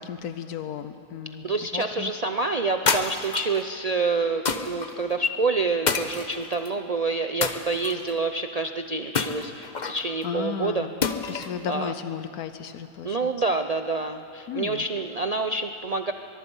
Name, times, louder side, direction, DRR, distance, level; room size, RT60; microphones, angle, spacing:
voice 1, 0.0-1.4 1.7-2.1 10.2-10.9 11.3-13.3 14.5-14.9, left 8 dB, 85° left, 10 dB, 1.2 m, -34 dB
voice 2, 1.4-10.9 11.7-11.9 13.0-16.1, right 3 dB, 70° right, 7 dB, 0.3 m, -27 dB
sound 1, 2.9-3.6 4.5-4.9 5.9-6.7 7.4-8.1 9.1-10.0 11.0-11.6, left 5 dB, 35° left, 0.9 m, -27 dB
23.0 x 22.5 x 5.5 m, 2.7 s
omnidirectional pair, 1.6 m